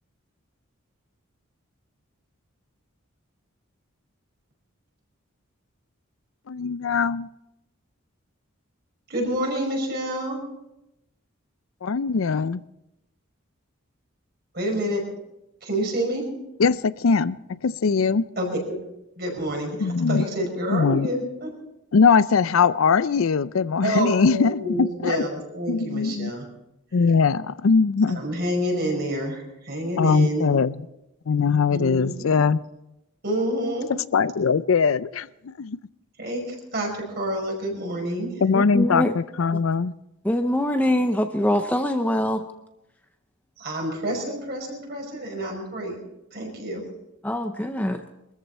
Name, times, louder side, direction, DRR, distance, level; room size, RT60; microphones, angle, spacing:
voice 1, 6.5-7.3 11.8-12.6 16.6-17.4 17.6-18.2 19.8-20.2 20.7-21.1 21.9-25.2 25.7-26.3 26.9-28.2 30.0-30.7 31.3-32.6 34.1-35.3 35.6-35.8 38.4-39.9, left 5 dB, 75° left, 0.5 m, -21 dB
voice 2, 9.1-10.4 14.5-15.0 15.6-16.3 18.4-18.8 19.2-21.5 23.8-26.5 28.1-30.5 31.7-32.3 33.2-33.9 36.2-38.3 43.6-46.0 46.3-46.8, right 1 dB, 50° right, 5.4 m, -28 dB
voice 3, 38.5-39.1 40.2-42.4 47.2-48.0, left 1 dB, 10° left, 0.6 m, -23 dB
22.5 x 14.0 x 4.3 m
head